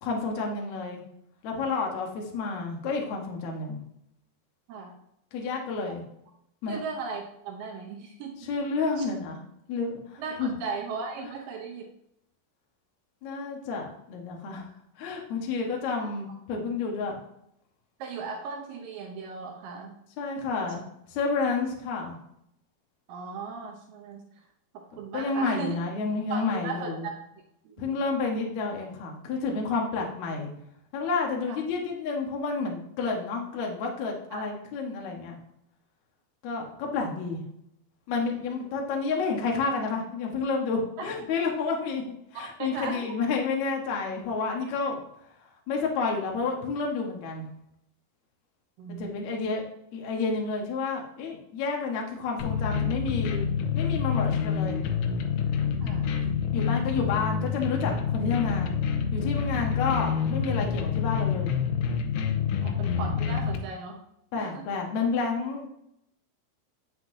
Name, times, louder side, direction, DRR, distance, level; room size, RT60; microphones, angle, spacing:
voice 1, 0.0-1.0 1.4-3.8 5.3-6.0 6.6-6.8 8.5-9.4 9.7-10.5 11.2-11.3 13.2-14.7 15.0-17.1 20.2-20.8 21.1-22.2 25.1-27.1 27.8-30.5 30.9-35.4 36.4-37.4 38.1-42.0 42.3-45.0 45.7-47.5 49.0-49.6 49.9-53.5 53.8-54.8 56.5-58.8 59.1-61.5 64.3-65.7, left 4 dB, 65° left, 0 dB, 1.8 m, -30 dB
voice 2, 6.7-8.5 9.0-9.1 10.2-11.9 16.0-16.1 18.0-19.9 23.1-24.2 24.7-25.8 26.3-27.1 27.8-28.0 31.5-31.6 34.3-34.4 41.0-41.1 42.6-43.2 48.8-49.5 55.8-56.2 62.6-64.0 64.4-64.8, right 5 dB, 85° right, 0 dB, 1.9 m, -37 dB
sound 1, 52.4-63.6, left 7 dB, 85° left, 3.1 m, -27 dB
9.3 x 7.6 x 2.7 m, 0.77 s
omnidirectional pair, 5.3 m